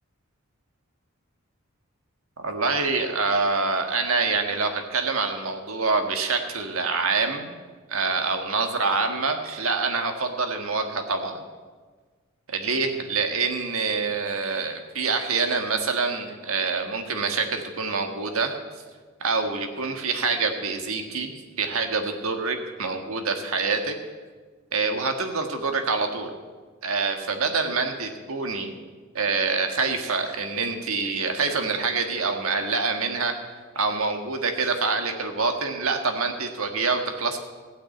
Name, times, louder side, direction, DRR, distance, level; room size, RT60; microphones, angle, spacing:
voice 1, 2.4-7.5 7.9-11.4 12.5-18.5 19.2-23.9 24.7-26.3 26.8-28.7 29.1-33.3 33.7-37.4, right 4 dB, 80° right, 5 dB, 1.6 m, -26 dB
16.0 x 5.9 x 9.0 m, 1.4 s
head